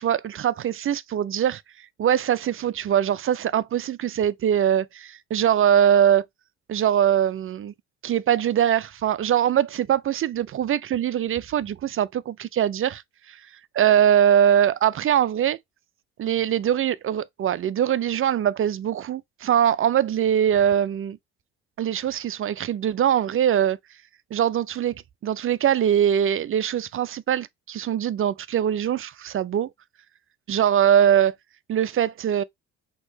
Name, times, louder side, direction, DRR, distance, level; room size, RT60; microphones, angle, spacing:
voice 1, 0.0-1.6 2.0-6.2 6.7-7.7 8.0-13.0 13.3-13.4 13.7-15.6 16.2-21.2 21.8-23.8 24.3-29.7 30.5-31.3 31.7-32.4, right 9 dB, 40° right, 0.5 m, -22 dB
6.1 x 3.0 x 2.7 m
hypercardioid pair, 55°, 33 cm